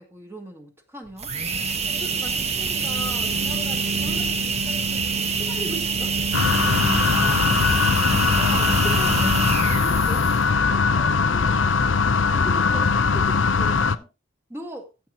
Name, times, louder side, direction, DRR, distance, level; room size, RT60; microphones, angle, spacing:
voice 1, 0.0-1.3 6.9-7.7 8.2-8.9 12.6-12.8 14.5-14.9, equal, 15° right, 2.3 m, -39 dB
sound 1, 1.1-10.5, right 4 dB, 35° right, 1.3 m, -25 dB
voice 2, 1.9-6.2 8.1-14.1, equal, 15° left, 1.9 m, -40 dB
sound 2, 6.3-14.0, left 5 dB, 85° left, 0.7 m, -20 dB
14.5 x 7.9 x 2.9 m
head